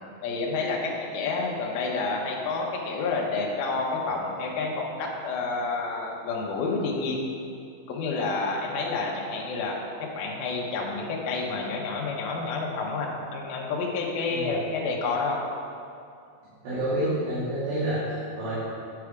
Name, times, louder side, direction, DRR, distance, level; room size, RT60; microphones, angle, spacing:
voice 1, 0.2-7.2 7.9-15.4, left 3 dB, 80° left, -2 dB, 2.6 m, -29 dB
voice 2, 16.4-18.5, right 1 dB, 80° right, -11 dB, 3.7 m, -29 dB
9.7 x 4.7 x 4.8 m, 2.4 s
omnidirectional pair, 4.4 m